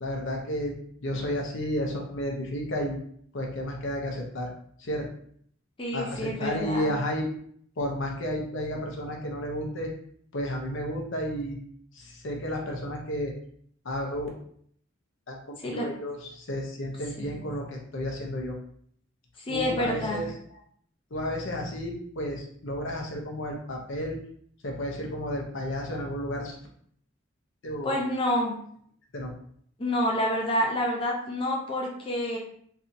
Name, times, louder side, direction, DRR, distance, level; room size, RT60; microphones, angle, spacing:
voice 1, 0.0-3.0 3.3-4.5 4.8-5.1 5.9-7.3 7.8-9.9 10.3-11.6 11.9-13.3 13.8-14.3 15.3-18.6 19.5-20.6 21.1-24.2 24.6-26.6 27.6-28.0 29.1-29.3, equal, 65° left, 0 dB, 0.7 m, -32 dB
voice 2, 5.8-6.9 15.6-15.8 17.2-17.4 19.4-20.2 27.8-28.6 29.8-32.4, left 1 dB, 25° left, -1 dB, 0.5 m, -28 dB
3.2 x 2.7 x 2.6 m, 0.63 s
head